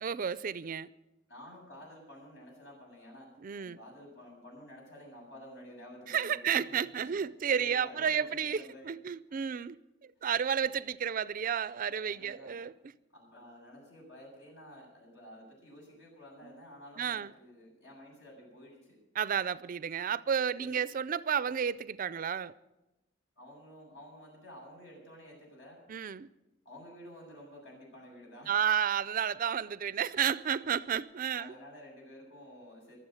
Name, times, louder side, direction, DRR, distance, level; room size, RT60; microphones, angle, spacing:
voice 1, 0.0-0.9 3.4-3.8 6.1-9.8 10.2-12.7 17.0-17.3 19.1-22.5 25.9-26.3 28.5-31.5, right 8 dB, 50° right, 0.4 m, -31 dB
voice 2, 1.3-9.0 9.3-9.4 10.2-10.3 12.0-12.6 13.1-19.0 20.5-20.8 23.4-25.9 26.6-28.6 31.3-33.0, left 1 dB, 70° left, 7.6 m, -51 dB
23.5 x 7.9 x 6.4 m
head